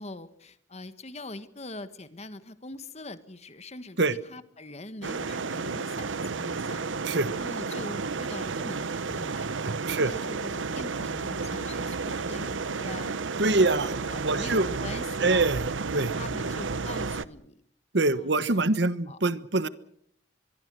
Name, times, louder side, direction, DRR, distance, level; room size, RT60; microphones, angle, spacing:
voice 1, 0.0-6.8 7.3-9.6 9.9-15.5 16.2-17.6 18.1-18.8 19.1-19.2, left 2 dB, 35° left, 12 dB, 1.5 m, -43 dB
sound 1, 5.0-17.2, right 4 dB, 85° right, 0.9 m, -32 dB
voice 2, 9.7-10.1 13.4-13.9 14.2-14.7 15.2-15.6 15.9-16.1 17.9-19.7, right 2 dB, 65° right, 14 dB, 1.2 m, -24 dB
24.0 x 23.0 x 6.4 m, 0.67 s
head